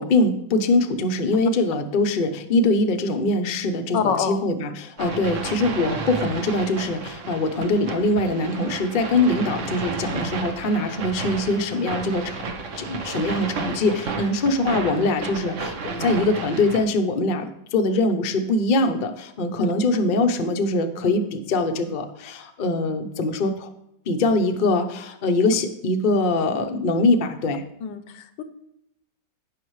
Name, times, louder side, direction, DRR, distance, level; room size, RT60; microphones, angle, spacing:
voice 1, 0.0-12.4 12.8-23.7 24.1-27.6, left 2 dB, 50° left, 5 dB, 0.6 m, -23 dB
voice 2, 3.9-4.4 5.0-5.1 10.4-10.5 19.6-19.7 27.8-28.4, left 7 dB, 80° left, 11 dB, 1.4 m, -26 dB
sound 1, 5.0-16.8, right 4 dB, 50° right, 1.1 m, -32 dB
15.5 x 5.5 x 3.1 m, 0.80 s
omnidirectional pair, 2.0 m